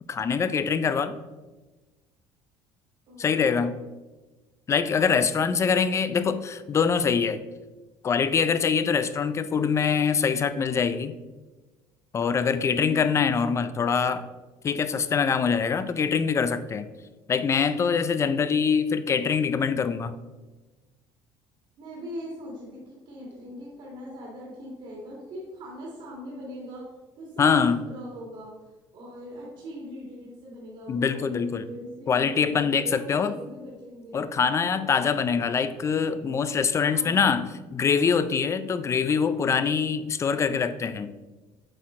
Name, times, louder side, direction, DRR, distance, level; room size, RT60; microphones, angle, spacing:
voice 1, 0.1-1.2 3.2-3.8 4.7-7.4 8.0-11.1 12.1-14.3 14.6-16.9 17.3-20.1 27.4-27.9 30.9-31.7 32.1-33.3 34.1-41.1, left 6 dB, 30° left, 12 dB, 0.4 m, -24 dB
voice 2, 3.1-3.7 12.7-13.0 21.8-26.9 27.2-27.6 27.9-28.5 28.9-34.2 34.7-34.9 36.7-37.3, equal, 55° right, -4 dB, 1.9 m, -41 dB
7.7 x 4.4 x 3.7 m, 1.2 s
cardioid pair, 110°, 10 cm